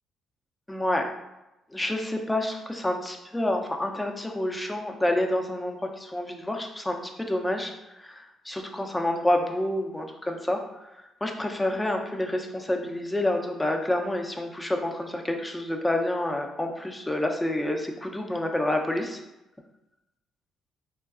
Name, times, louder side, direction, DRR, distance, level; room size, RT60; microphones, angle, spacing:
voice 1, 0.7-1.1 1.7-7.7 8.0-10.6 11.2-19.2, left 1 dB, 15° left, 3 dB, 0.6 m, -28 dB
3.7 x 2.2 x 2.4 m, 0.95 s
hypercardioid pair, 45°, 0 cm